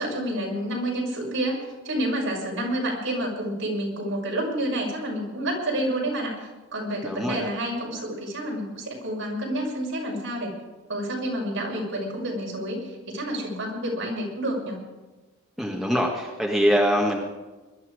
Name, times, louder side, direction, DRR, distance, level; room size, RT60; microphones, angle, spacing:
voice 1, 0.0-10.5 10.9-14.8, right 1 dB, 65° right, -2 dB, 6.1 m, -29 dB
voice 2, 7.0-7.5 15.6-17.2, equal, ahead, -1 dB, 1.5 m, -23 dB
22.5 x 12.5 x 4.9 m, 1.2 s
head